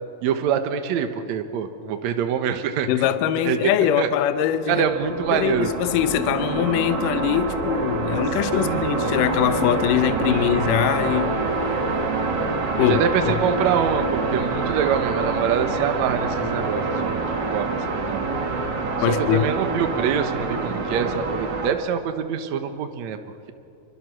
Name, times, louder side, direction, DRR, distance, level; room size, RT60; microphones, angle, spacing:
voice 1, 0.2-3.1 3.5-3.6 4.0-4.1 4.7-5.7 8.5-9.1 10.3-10.5 12.8-18.3 19.1-23.2, right 8 dB, 60° right, 2.2 m, -25 dB
voice 2, 2.9-4.9 5.3-11.9 12.8-13.1 19.0-19.5, left 11 dB, 75° left, 2.3 m, -22 dB
sound 1, 4.5-21.7, right 3 dB, 40° right, 1.9 m, -26 dB
27.0 x 24.0 x 6.3 m
omnidirectional pair, 4.0 m